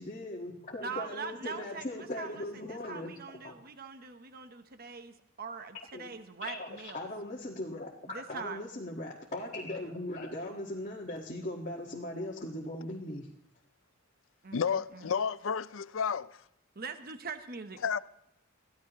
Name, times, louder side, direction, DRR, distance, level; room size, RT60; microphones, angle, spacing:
voice 1, 0.0-3.2 3.4-3.5 5.7-6.1 6.4-13.3, left 1 dB, 40° left, 1.7 m, -39 dB
voice 2, 0.8-7.1 8.1-8.6 14.4-15.1 16.7-17.9, right 5 dB, 50° right, 1.0 m, -42 dB
voice 3, 14.5-16.3 17.8-18.0, left 6 dB, 70° left, 0.5 m, -31 dB
23.5 x 15.0 x 3.0 m
head